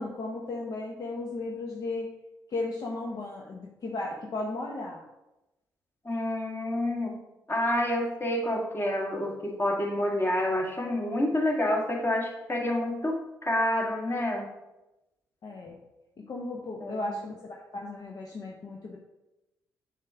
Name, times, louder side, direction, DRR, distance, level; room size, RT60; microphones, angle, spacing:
voice 1, 0.0-2.1 2.5-5.0 15.4-15.8 16.2-19.0, left 2 dB, 55° left, 0 dB, 0.8 m, -35 dB
voice 2, 6.0-7.2 7.5-14.5 16.8-17.2, left 1 dB, 30° left, 0 dB, 1.7 m, -28 dB
6.4 x 5.0 x 3.5 m, 0.97 s
supercardioid pair, 50°, 8 cm